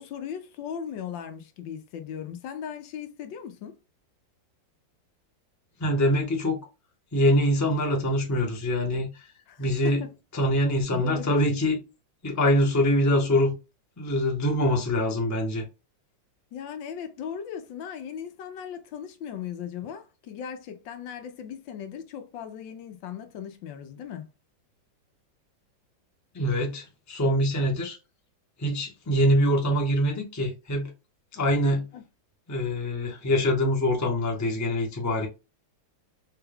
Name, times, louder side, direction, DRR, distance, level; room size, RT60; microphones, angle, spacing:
voice 1, 0.0-3.8 9.5-10.1 10.9-11.4 16.5-24.3 31.9-32.0, left 8 dB, 85° left, 1.4 m, -38 dB
voice 2, 5.8-6.6 7.1-9.3 9.6-10.0 10.3-11.8 12.2-13.5 14.0-15.6 26.3-28.0 28.6-30.9 31.3-31.8 32.5-35.3, equal, 15° left, 0.5 m, -24 dB
4.4 x 2.3 x 3.4 m
omnidirectional pair, 2.0 m